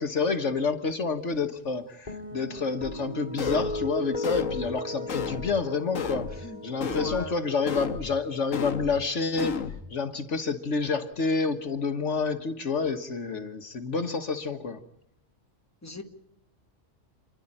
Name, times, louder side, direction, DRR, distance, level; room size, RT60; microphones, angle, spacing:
voice 1, 0.0-9.6 9.9-14.8, left 4 dB, 65° left, 8 dB, 1.7 m, -29 dB
sound 1, 2.1-8.6, left 2 dB, 30° left, 2.5 m, -37 dB
sound 2, 2.8-2.9 3.4-3.8 4.2-4.7 5.1-5.5 5.9-6.4 6.8-7.2 7.7-8.1 8.5-8.9 9.4-9.8, left 7 dB, 80° left, 1.6 m, -32 dB
voice 2, 6.9-7.3 15.8-16.0, left 2 dB, 10° left, 4 dB, 2.0 m, -38 dB
29.0 x 11.5 x 9.9 m, 0.86 s
omnidirectional pair, 1.3 m